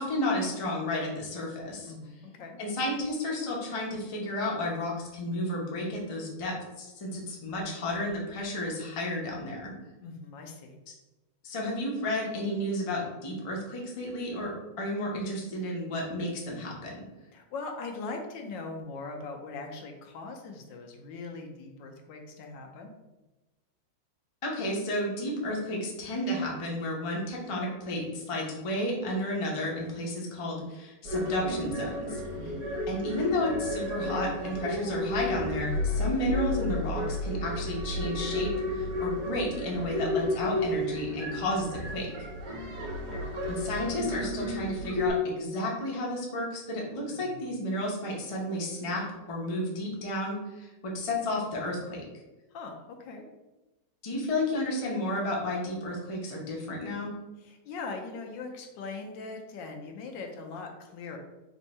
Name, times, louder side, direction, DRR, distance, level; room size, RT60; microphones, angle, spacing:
voice 1, 0.0-1.9 2.6-9.7 11.4-17.0 24.4-32.2 32.9-42.1 43.5-52.0 54.0-57.1, left 1 dB, 40° left, -2 dB, 0.4 m, -32 dB
voice 2, 1.9-2.6 10.0-10.8 17.3-22.9 32.3-32.7 43.1-43.3 47.1-47.4 52.5-53.2 57.4-61.2, left 3 dB, 85° left, 3 dB, 1.4 m, -41 dB
sound 1, 31.1-45.1, left 1 dB, 55° right, 1.3 m, -32 dB
3.6 x 2.6 x 4.2 m, 1.1 s
omnidirectional pair, 2.0 m